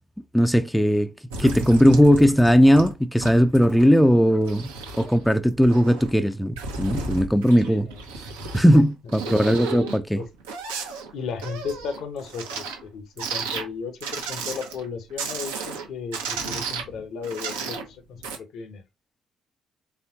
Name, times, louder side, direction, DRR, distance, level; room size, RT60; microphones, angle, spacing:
voice 1, 0.3-1.1 1.4-4.7 5.0-7.9 8.5-10.2, equal, 5° left, 0.4 m, -18 dB
sound 1, 1.3-2.9 3.2-3.9 4.2-6.2 6.6-8.8 9.1-12.8 13.2-13.7 14.0-14.9 15.2-17.9 18.2-18.4, right 4 dB, 75° right, 0.8 m, -33 dB
voice 2, 7.6-8.0 9.2-10.3 11.1-18.8, left 5 dB, 60° left, 0.7 m, -35 dB
4.3 x 3.4 x 2.7 m
figure-of-eight pair, 40°, 0 cm